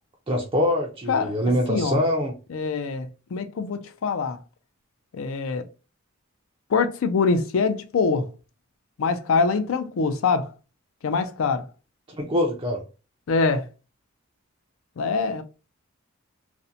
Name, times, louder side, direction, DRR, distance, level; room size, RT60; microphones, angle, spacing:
voice 1, 0.3-2.3 12.1-12.8, left 1 dB, 25° right, 0.4 m, -24 dB
voice 2, 2.5-4.4 5.1-5.7 6.7-8.3 9.0-10.5 11.0-11.7 13.3-13.7 15.0-15.4, left 4 dB, 70° left, 0.4 m, -24 dB
2.5 x 2.1 x 2.7 m
head